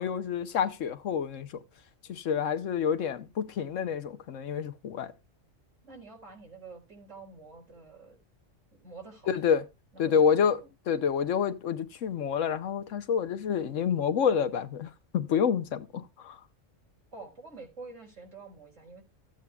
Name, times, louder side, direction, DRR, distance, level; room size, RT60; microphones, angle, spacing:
voice 1, 0.0-1.6 2.1-5.1 9.3-9.7 10.0-10.6 10.9-16.4, left 7 dB, 80° left, 1.2 m, -28 dB
voice 2, 5.8-8.2 8.7-9.4 9.9-10.7 17.1-19.0, right 3 dB, 80° right, 4.9 m, -48 dB
15.0 x 9.0 x 2.3 m
omnidirectional pair, 1.3 m